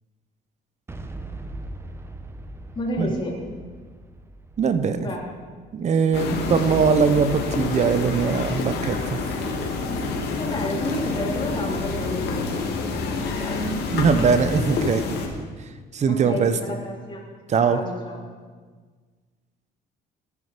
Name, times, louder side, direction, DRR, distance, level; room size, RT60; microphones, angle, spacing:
Boom, 0.9-6.8, right 2 dB, 15° right, 1.0 m, -40 dB
voice 1, 2.7-3.4 5.0-5.3 10.4-13.7 16.1-17.3 17.6-18.3, left 1 dB, 30° left, -2 dB, 3.2 m, -31 dB
voice 2, 4.6-5.1 5.7-9.2 13.9-15.1 15.9-16.5 17.5-17.8, right 6 dB, 45° right, 11 dB, 0.9 m, -21 dB
sound 1, 6.1-15.3, left 3 dB, 75° left, 2.4 m, -28 dB
16.0 x 9.9 x 5.2 m, 1.5 s
cardioid pair, 110°, 17 cm